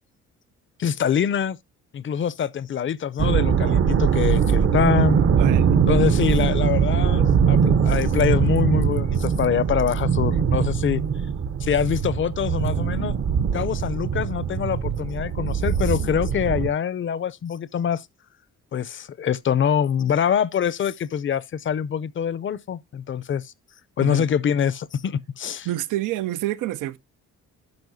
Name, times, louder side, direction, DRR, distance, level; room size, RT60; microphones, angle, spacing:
voice 1, 0.8-1.6 1.9-5.2 5.9-11.0 11.6-13.1 13.5-18.1 18.7-23.5 24.0-25.7, left 8 dB, 40° left, 0.5 m, -24 dB
sound 1, 3.2-16.7, right 7 dB, 50° right, 0.8 m, -21 dB
voice 2, 25.6-27.0, right 15 dB, 85° right, 0.6 m, -27 dB
10.5 x 5.7 x 2.7 m
cardioid pair, 90°, 30 cm